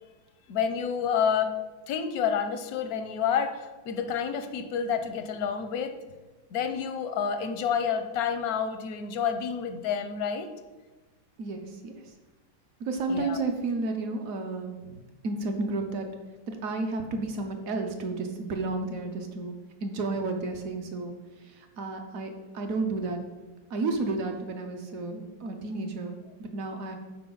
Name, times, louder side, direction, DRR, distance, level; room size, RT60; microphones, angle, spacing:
voice 1, 0.5-1.5 1.9-6.0 6.5-10.5 13.1-13.4, left 7 dB, 70° left, 8 dB, 0.9 m, -29 dB
voice 2, 11.4-11.9 12.8-15.0 15.2-16.1 16.5-19.5 19.8-21.1 21.4-23.2 23.7-27.0, right 3 dB, 60° right, 5 dB, 1.0 m, -32 dB
12.0 x 4.7 x 3.9 m, 1.2 s
omnidirectional pair, 2.1 m